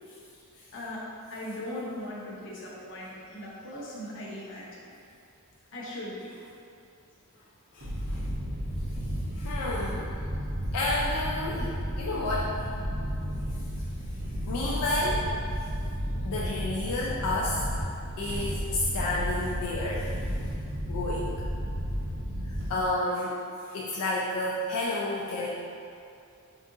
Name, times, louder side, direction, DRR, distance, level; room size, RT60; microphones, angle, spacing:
voice 1, 0.7-1.0 1.3-4.8 5.7-6.3, left 1 dB, 60° left, -6 dB, 0.8 m, -39 dB
voice 2, 7.7-8.2 9.4-10.1 10.7-12.6 14.5-15.3 16.2-17.6 18.2-20.1 20.9-21.3 22.4-25.5, left 2 dB, 85° left, -5 dB, 0.4 m, -30 dB
sound 1, 7.8-22.9, equal, 70° right, 1.0 m, -33 dB
4.6 x 2.5 x 2.6 m, 2.5 s
head